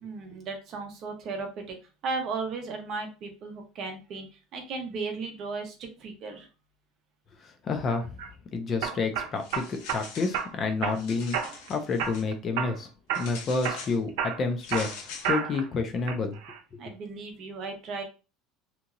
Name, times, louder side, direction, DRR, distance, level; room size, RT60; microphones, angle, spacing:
voice 1, 0.0-1.8 2.0-6.5 16.8-18.0, right 4 dB, 35° right, 4 dB, 0.7 m, -35 dB
voice 2, 7.4-8.1 8.5-12.9 13.2-14.9 15.3-16.4 16.7-16.8, left 4 dB, 25° left, 6 dB, 0.3 m, -29 dB
sound 1, 7.9-8.3 8.8-10.0 10.3-11.0 11.3-11.7 12.0-12.8 13.1-13.3 13.6-15.7 16.1-16.6, right 8 dB, 80° right, 0.6 m, -31 dB
sound 2, 9.3-10.5 10.8-12.3 13.1-14.0 14.6-15.3, left 5 dB, 60° left, 0.7 m, -44 dB
2.9 x 2.7 x 2.5 m, 0.31 s
cardioid pair, 175°, 0 cm